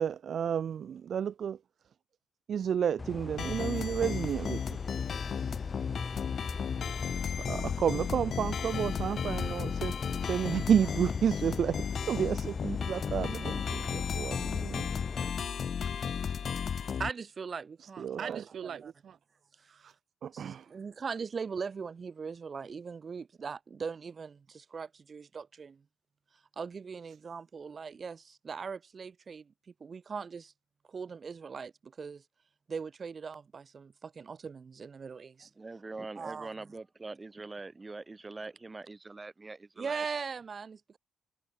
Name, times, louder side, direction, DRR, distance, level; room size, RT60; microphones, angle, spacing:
voice 1, 0.0-1.6 2.5-4.6 7.5-9.9 10.2-14.9 17.8-19.1 20.2-20.6, right 8 dB, 55° right, 1.1 m, -31 dB
sound 1, 3.0-15.3, left 3 dB, 25° left, 3.2 m, -41 dB
sound 2, 3.4-17.1, left 7 dB, 50° left, 3.7 m, -34 dB
voice 2, 17.0-18.9 19.6-19.7 20.3-25.8 26.6-29.5 29.8-30.5 30.9-32.2 32.7-35.5 36.2-36.5 39.8-41.0, right 5 dB, 40° right, 2.8 m, -40 dB
voice 3, 35.6-40.0, right 3 dB, 20° right, 4.4 m, -43 dB
cardioid pair, 90°, 0 cm